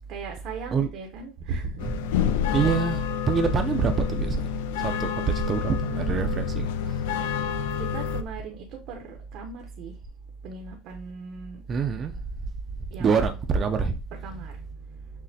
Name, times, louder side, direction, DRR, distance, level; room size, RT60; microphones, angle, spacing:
voice 1, 0.1-1.9 5.8-6.5 7.8-10.0 10.4-11.6 12.8-13.2 14.1-15.2, right 4 dB, 60° right, 0.7 m, -38 dB
sound 1, 1.8-8.2, left 8 dB, 85° left, 0.3 m, -28 dB
voice 2, 1.8-2.1 2.5-7.1 11.7-12.2 13.0-14.0, right 5 dB, 35° right, 0.4 m, -26 dB
6.2 x 2.1 x 2.7 m
supercardioid pair, 115°, 0 cm